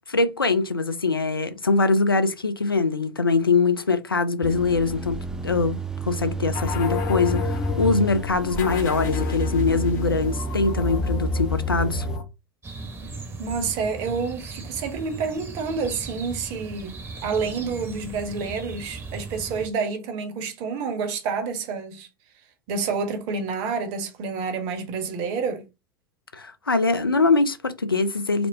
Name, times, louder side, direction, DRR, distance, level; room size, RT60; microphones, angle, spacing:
voice 1, 0.1-5.8 6.1-12.1 26.3-28.5, left 3 dB, 90° left, 0.4 m, -23 dB
sound 1, 4.4-12.2, right 2 dB, 5° right, 0.4 m, -31 dB
sound 2, 6.5-12.2, left 5 dB, 60° left, 1.0 m, -29 dB
sound 3, 12.6-19.7, right 3 dB, 20° right, 0.8 m, -38 dB
voice 2, 13.4-22.1 22.7-25.6, right 5 dB, 50° right, 1.1 m, -29 dB
4.2 x 2.1 x 2.7 m
figure-of-eight pair, 80°, 12 cm